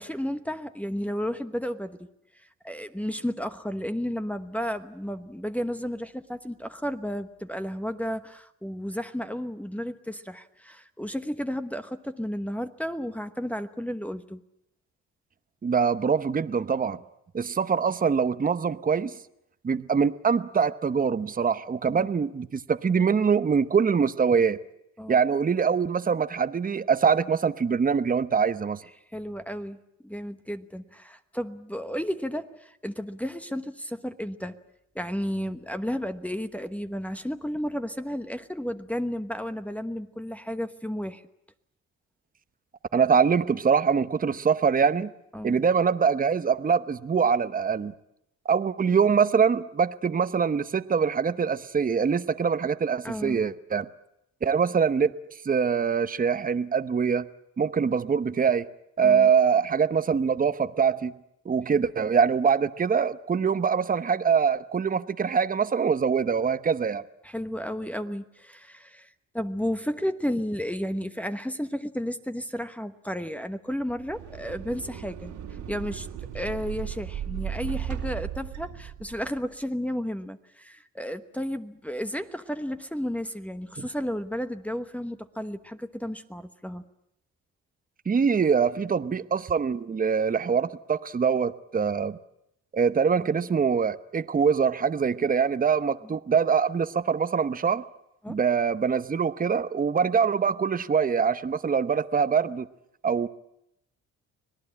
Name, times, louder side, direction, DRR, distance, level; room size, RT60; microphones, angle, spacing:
voice 1, 0.0-14.4 21.9-22.1 25.0-25.2 29.1-34.6 34.9-41.2 45.3-45.6 53.0-53.4 59.0-59.3 67.2-75.3 75.7-76.1 76.3-86.8 96.0-96.2 98.2-98.4, equal, 5° left, 7 dB, 1.1 m, -33 dB
voice 2, 15.6-17.0 17.3-19.2 19.6-24.6 25.1-28.8 42.9-45.1 45.4-47.9 48.5-53.9 54.4-55.1 55.4-57.3 57.6-58.7 59.0-61.1 61.4-67.0 88.1-92.2 92.7-97.8 98.3-102.7 103.0-103.3, right 6 dB, 30° right, 12 dB, 0.9 m, -24 dB
sound 1, 73.8-79.4, right 10 dB, 85° right, 3.6 m, -36 dB
26.0 x 18.5 x 8.7 m, 0.80 s
cardioid pair, 90°, 30 cm